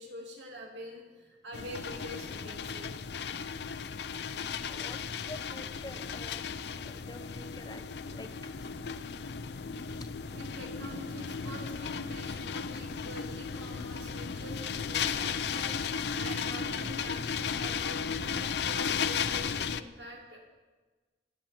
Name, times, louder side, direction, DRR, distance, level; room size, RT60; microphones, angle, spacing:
voice 1, 0.0-2.9 9.8-20.4, equal, 85° right, -1 dB, 2.5 m, -46 dB
sound 1, 1.5-19.8, left 6 dB, 65° left, 0.5 m, -35 dB
voice 2, 4.2-8.3 8.6-8.9 10.0-10.1, left 2 dB, 20° left, 9 dB, 0.7 m, -48 dB
26.0 x 8.9 x 4.4 m, 1.3 s
head